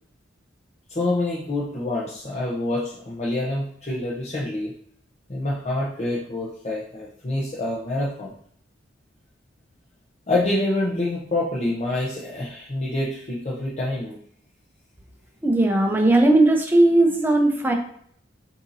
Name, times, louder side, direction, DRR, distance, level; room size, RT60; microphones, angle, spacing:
voice 1, 0.9-4.7 5.3-8.3 10.3-14.2, left 2 dB, 35° left, -6 dB, 0.8 m, -26 dB
voice 2, 15.4-17.7, right 2 dB, 10° right, 2 dB, 0.7 m, -17 dB
6.9 x 2.8 x 2.7 m, 0.64 s
head